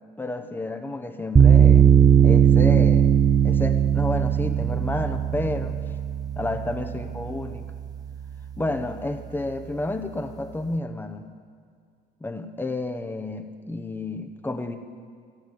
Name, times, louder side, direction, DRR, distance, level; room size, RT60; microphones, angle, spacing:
voice 1, 0.2-1.9 2.2-5.8 6.4-7.7 8.6-11.3 12.2-14.8, left 2 dB, 10° left, 7 dB, 1.0 m, -30 dB
sound 1, 1.4-8.5, right 8 dB, 20° right, 0.7 m, -19 dB
15.0 x 7.5 x 9.2 m, 2.2 s
cardioid pair, 110°, 17 cm